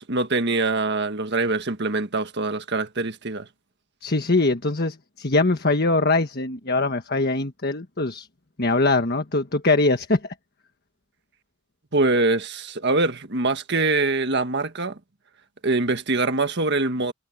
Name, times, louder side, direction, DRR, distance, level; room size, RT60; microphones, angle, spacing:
voice 1, 0.0-3.5 11.9-15.0 15.6-17.1, right 3 dB, 50° right, 1.6 m, -24 dB
voice 2, 4.0-8.3 8.6-10.3, left 2 dB, 45° left, 1.5 m, -22 dB
head